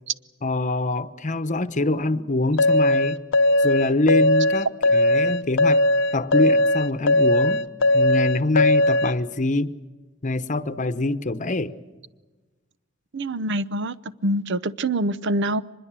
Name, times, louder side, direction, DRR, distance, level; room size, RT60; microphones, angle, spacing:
voice 1, 0.4-3.2 3.6-5.8 6.1-7.6 7.9-9.7 10.2-11.7, left 2 dB, 40° left, 13 dB, 1.0 m, -24 dB
sound 1, 2.6-9.1, left 1 dB, 65° left, 0.8 m, -19 dB
voice 2, 13.1-13.9 14.2-15.6, right 1 dB, 60° right, 16 dB, 0.8 m, -25 dB
24.5 x 21.5 x 7.6 m, 1.2 s
head